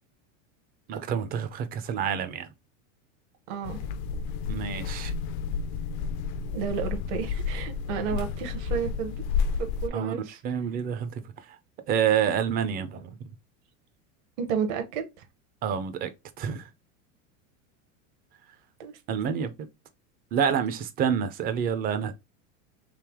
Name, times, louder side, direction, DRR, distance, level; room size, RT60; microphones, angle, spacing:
voice 1, 0.9-2.5 4.5-5.1 9.9-11.2 11.9-13.2 15.6-16.1 16.4-16.7 19.1-19.5 20.3-22.1, right 8 dB, 25° right, 0.4 m, -28 dB
voice 2, 3.5-3.8 6.5-9.2 9.6-10.4 14.4-15.1 18.8-18.9, right 7 dB, 60° right, 0.9 m, -31 dB
sound 1, 3.6-9.9, left 6 dB, 60° left, 0.5 m, -31 dB
3.4 x 2.8 x 3.4 m
supercardioid pair, 140°, 39 cm